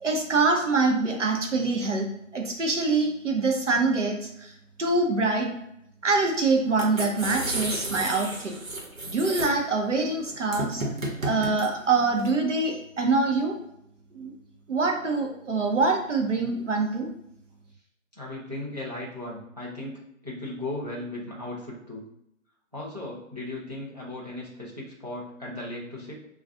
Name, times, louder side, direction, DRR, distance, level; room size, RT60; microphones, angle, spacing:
voice 1, 0.0-2.1 2.3-4.5 4.8-5.5 6.0-8.5 9.1-10.8 11.2-13.6 14.1-14.3 14.7-17.1, right 3 dB, 65° right, 2 dB, 0.8 m, -25 dB
sound 1, 6.7-12.3, right 1 dB, 90° right, 1.1 m, -33 dB
voice 2, 18.2-22.0 22.7-26.3, left 1 dB, 30° right, -4 dB, 0.6 m, -37 dB
2.5 x 2.3 x 3.4 m, 0.78 s
figure-of-eight pair, 175°, 40 cm